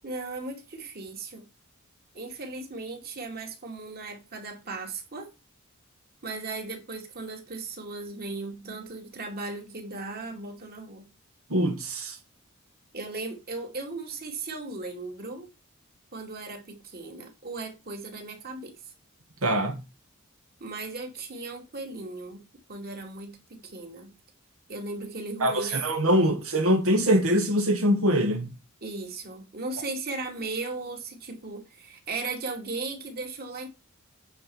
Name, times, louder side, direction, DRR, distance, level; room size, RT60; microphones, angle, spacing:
voice 1, 0.0-1.5 2.1-5.3 6.2-11.1 12.9-15.5 16.1-18.7 20.6-22.4 22.7-24.1 24.7-25.8 26.2-26.4 28.8-33.7, right 3 dB, 50° right, 2.5 m, -37 dB
voice 2, 11.5-12.2 19.4-19.8 25.4-28.5, equal, 90° right, 1.6 m, -23 dB
9.1 x 4.4 x 7.1 m
head